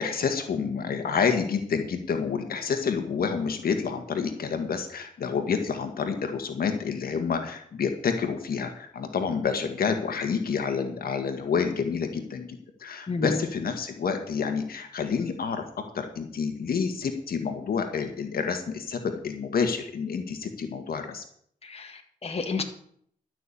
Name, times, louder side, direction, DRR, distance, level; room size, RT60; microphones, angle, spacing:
voice 1, 0.0-15.6 15.9-21.2, left 6 dB, 75° left, 6 dB, 1.6 m, -28 dB
voice 2, 13.1-13.5 21.6-22.6, left 4 dB, 40° left, 5 dB, 1.7 m, -31 dB
12.5 x 6.1 x 8.5 m, 0.65 s
cardioid pair, 80°, 15 cm